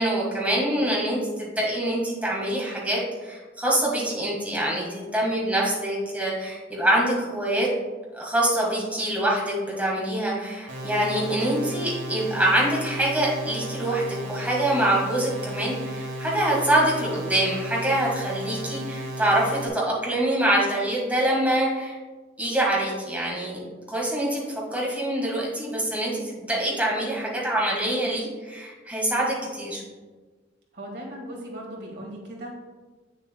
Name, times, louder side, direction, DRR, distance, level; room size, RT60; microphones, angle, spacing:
voice 1, 0.0-7.7 8.1-14.0 14.3-22.0 22.4-23.6 23.9-24.4 24.7-29.8, right 1 dB, 10° right, -4 dB, 1.6 m, -25 dB
sound 1, 10.7-19.7, right 1 dB, 90° right, 1.4 m, -34 dB
voice 2, 30.7-32.5, right 1 dB, 65° right, -1 dB, 1.8 m, -37 dB
8.2 x 6.6 x 2.2 m, 1.3 s
head